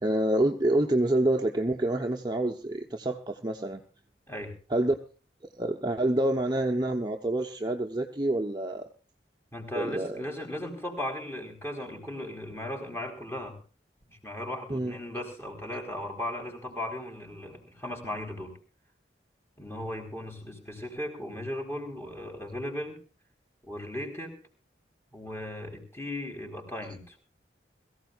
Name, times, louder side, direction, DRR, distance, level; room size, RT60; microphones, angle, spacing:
voice 1, 0.0-3.8 4.7-5.0 5.6-8.8 9.7-10.2 14.7-14.9, right 1 dB, 25° right, 2 dB, 0.9 m, -27 dB
voice 2, 9.5-13.6 14.0-18.5 19.6-23.0 23.6-24.4 25.1-27.2, left 1 dB, 15° left, 3 dB, 4.2 m, -37 dB
22.0 x 15.5 x 2.5 m, 0.36 s
head